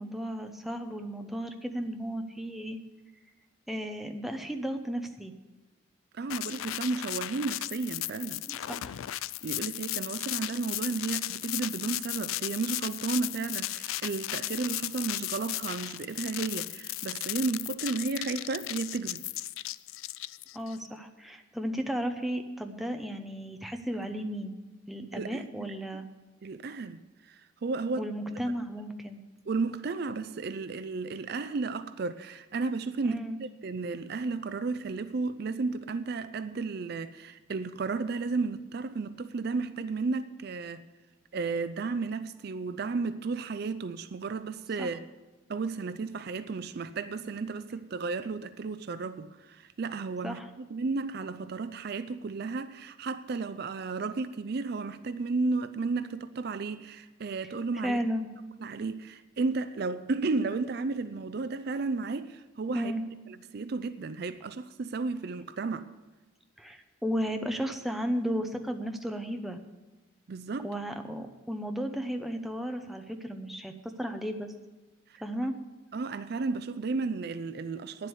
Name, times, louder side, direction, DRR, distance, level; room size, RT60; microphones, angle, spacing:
voice 1, 0.0-2.8 3.7-5.3 8.5-9.0 20.5-24.5 24.9-26.1 28.0-29.2 33.0-33.4 44.8-44.9 50.2-50.5 57.8-58.3 62.7-63.0 66.6-69.6 70.6-73.7 74.0-74.5 75.2-75.5, equal, ahead, 0.7 m, -34 dB
voice 2, 6.1-8.4 9.4-19.2 25.1-26.1 26.4-28.1 29.5-40.8 41.3-45.1 45.5-58.0 58.6-62.9 63.3-65.9 70.3-70.7 75.1-75.2 75.9-78.1, right 4 dB, 50° right, 0.4 m, -33 dB
sound 1, 6.3-20.8, left 16 dB, 80° left, 0.3 m, -35 dB
9.9 x 7.8 x 8.0 m
head